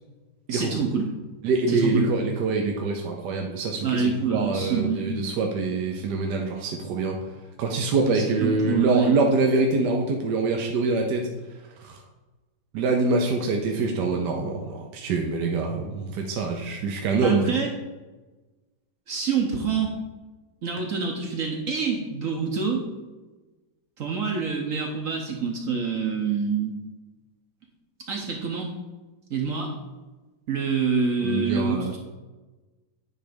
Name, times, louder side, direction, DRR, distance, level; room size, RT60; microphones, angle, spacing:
voice 1, 0.5-1.1 1.7-2.1 3.8-5.2 8.1-9.2 17.2-17.7 19.1-20.0 20.6-22.9 24.0-26.8 28.1-28.7 29.3-29.8 30.5-32.0, right 5 dB, 55° right, 1 dB, 1.1 m, -26 dB
voice 2, 1.4-7.2 7.6-11.3 11.8-12.0 12.7-17.5 31.2-31.9, right 3 dB, 80° right, 2 dB, 1.4 m, -25 dB
9.2 x 3.3 x 5.1 m, 1.2 s
omnidirectional pair, 1.8 m